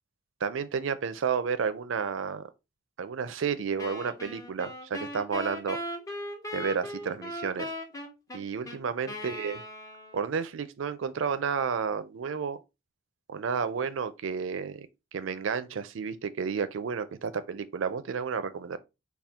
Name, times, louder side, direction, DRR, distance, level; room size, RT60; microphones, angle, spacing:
voice 1, 0.4-2.4 3.0-5.8 6.5-7.7 8.3-9.6 10.1-12.6 13.3-14.9 15.1-18.8, right 6 dB, 70° right, 0.4 m, -31 dB
Wind instrument woodwind instrument, 3.8-10.4, left 1 dB, 15° left, 0.5 m, -39 dB
4.2 x 2.3 x 3.4 m
head